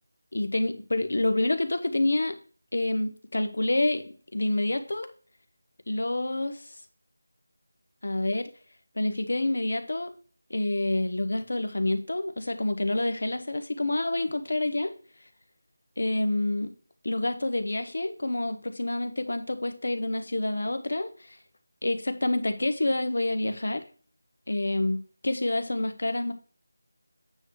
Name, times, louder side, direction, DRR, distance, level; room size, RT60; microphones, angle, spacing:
voice 1, 0.3-2.4 2.7-5.1 5.9-6.6 8.0-8.5 9.0-10.1 10.5-14.9 16.0-16.7 17.0-21.4 21.8-23.8 24.5-26.3, left 2 dB, 70° left, 8 dB, 1.2 m, -28 dB
8.9 x 3.1 x 6.3 m, 0.40 s
figure-of-eight pair, 170°, 0 cm